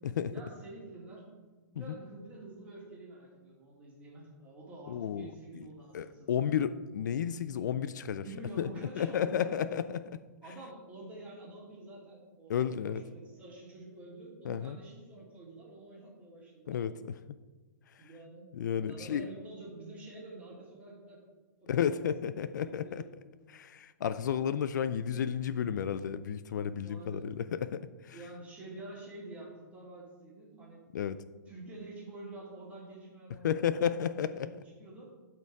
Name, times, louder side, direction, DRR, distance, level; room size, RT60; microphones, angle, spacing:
voice 1, 0.3-1.3 1.7-6.6 8.2-9.7 10.4-16.8 18.0-18.5 18.9-21.2 21.7-23.4 26.8-27.3 28.1-30.8 31.5-35.2, right 2 dB, 15° right, -4 dB, 2.3 m, -48 dB
voice 2, 4.9-5.3 5.9-8.2 8.6-8.7 8.9-10.2 12.5-13.0 14.4-14.8 16.7-17.2 18.5-19.3 21.7-23.0 23.5-28.2 30.9-31.2 33.4-34.5, left 8 dB, 65° left, 14 dB, 0.4 m, -32 dB
12.0 x 4.6 x 4.7 m, 1.3 s
hypercardioid pair, 155°, 10 cm